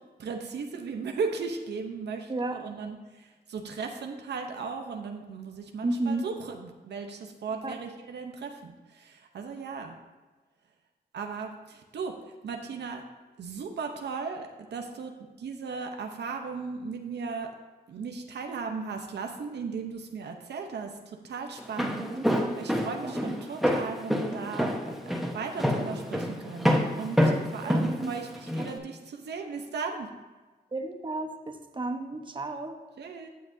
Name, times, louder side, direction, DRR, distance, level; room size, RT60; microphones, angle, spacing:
voice 1, 0.2-10.0 11.1-12.1 12.4-13.1 13.4-15.1 15.4-17.5 17.9-22.1 22.6-24.7 25.2-30.1 33.0-33.3, right 5 dB, 75° right, 4 dB, 0.9 m, -36 dB
voice 2, 5.8-6.3 7.6-7.8 21.8-22.6 23.0-23.4 27.6-28.1 28.6-28.7 30.7-32.8, right 2 dB, 30° right, 4 dB, 1.1 m, -33 dB
Walk footsteps, 21.6-28.7, equal, ahead, 1.2 m, -27 dB
15.0 x 5.9 x 2.7 m, 1.3 s
cardioid pair, 75°, 17 cm